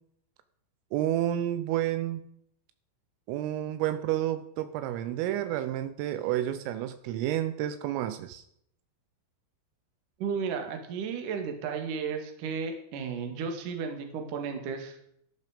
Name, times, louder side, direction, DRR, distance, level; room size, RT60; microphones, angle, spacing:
voice 1, 0.9-2.2 3.3-8.4, right 12 dB, 80° right, 11 dB, 3.3 m, -30 dB
voice 2, 10.2-15.0, right 6 dB, 55° right, 5 dB, 2.8 m, -34 dB
13.0 x 12.0 x 5.0 m, 0.71 s
omnidirectional pair, 6.0 m